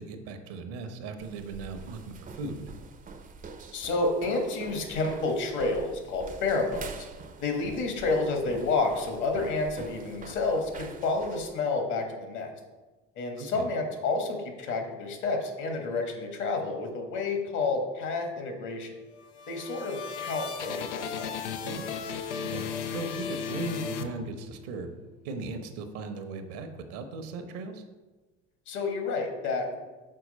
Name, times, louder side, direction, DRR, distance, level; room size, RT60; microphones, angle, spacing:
voice 1, 0.0-2.7 13.4-13.7 21.6-21.9 22.4-24.9 25.2-27.8, right 3 dB, 60° right, 7 dB, 1.0 m, -38 dB
sound 1, 1.2-11.6, right 4 dB, 25° right, 0.6 m, -45 dB
voice 2, 3.7-6.9 7.4-12.5 13.1-18.9 19.5-21.3 28.7-29.8, left 3 dB, 55° left, 3 dB, 1.6 m, -30 dB
sound 2, 19.1-24.7, left 6 dB, 80° left, 0.6 m, -35 dB
6.5 x 4.6 x 4.2 m, 1.2 s
hypercardioid pair, 65°, 35 cm